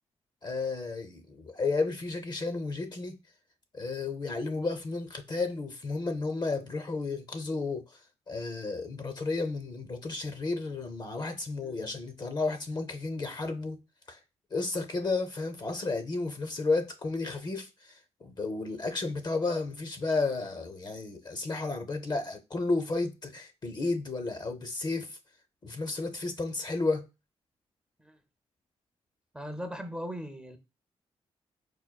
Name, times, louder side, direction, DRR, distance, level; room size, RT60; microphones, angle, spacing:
voice 1, 0.4-3.2 3.7-7.9 8.3-13.8 14.1-14.2 14.5-17.7 18.2-25.1 25.6-27.0, left 3 dB, 40° left, 0.5 m, -32 dB
voice 2, 29.3-30.6, equal, 10° right, 0.5 m, -39 dB
4.4 x 2.2 x 2.2 m
cardioid pair, 70°, 11 cm